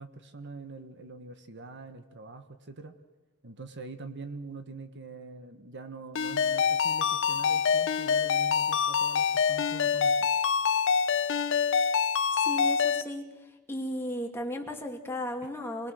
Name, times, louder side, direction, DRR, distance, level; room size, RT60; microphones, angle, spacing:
voice 1, 0.0-3.0 3.4-10.3, right 3 dB, 55° right, 9 dB, 1.5 m, -44 dB
Ringtone, 6.2-13.0, left 6 dB, 60° left, 0.7 m, -26 dB
voice 2, 12.3-13.2 13.7-15.9, left 1 dB, 10° left, 1 dB, 2.7 m, -35 dB
27.0 x 21.0 x 6.5 m, 1.2 s
head